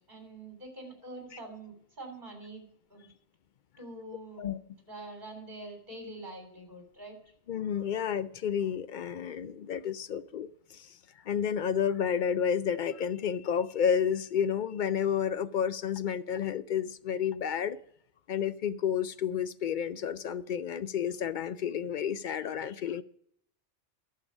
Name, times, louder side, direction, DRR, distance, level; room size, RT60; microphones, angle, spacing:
voice 1, 0.1-3.1 3.8-4.4 4.9-7.2, right 2 dB, 40° right, 3.4 m, -45 dB
voice 2, 7.5-11.0 11.2-17.8 18.3-23.0, left 8 dB, 60° left, 0.5 m, -31 dB
11.5 x 6.7 x 6.2 m
omnidirectional pair, 1.2 m